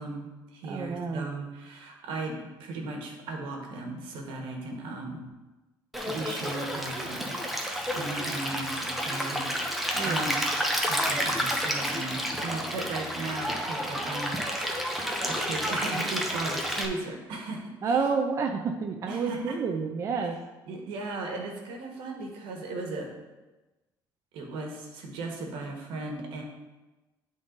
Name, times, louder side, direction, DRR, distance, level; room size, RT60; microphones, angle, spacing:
voice 1, 0.0-5.3 6.1-7.6 7.9-10.5 10.9-18.0 19.1-19.5 20.2-20.3 20.7-23.1 24.3-26.4, right 2 dB, 85° right, 1 dB, 1.4 m, -37 dB
voice 2, 0.7-1.3 9.9-10.3 17.8-20.4, right 5 dB, 40° right, 4 dB, 0.5 m, -29 dB
Stream, 5.9-16.9, equal, ahead, 0.8 m, -30 dB
9.9 x 3.8 x 3.9 m, 1.1 s
cardioid pair, 140°, 8 cm